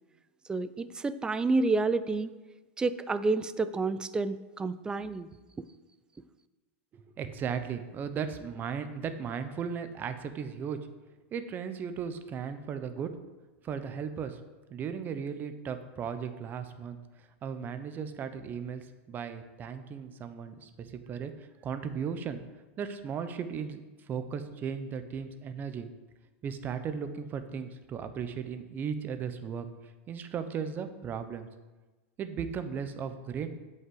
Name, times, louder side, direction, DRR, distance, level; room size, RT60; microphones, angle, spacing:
voice 1, 0.5-2.3 2.8-5.3 5.6-5.7, right 3 dB, 10° right, 14 dB, 0.4 m, -29 dB
voice 2, 6.9-10.8 11.3-13.1 13.6-14.4 14.7-17.0 17.4-21.3 21.6-22.4 22.8-23.8 24.1-25.9 26.4-29.7 30.1-31.5 32.2-33.6, right 7 dB, 30° right, 9 dB, 0.8 m, -36 dB
8.1 x 5.5 x 7.8 m, 1.2 s
supercardioid pair, 135°, 7 cm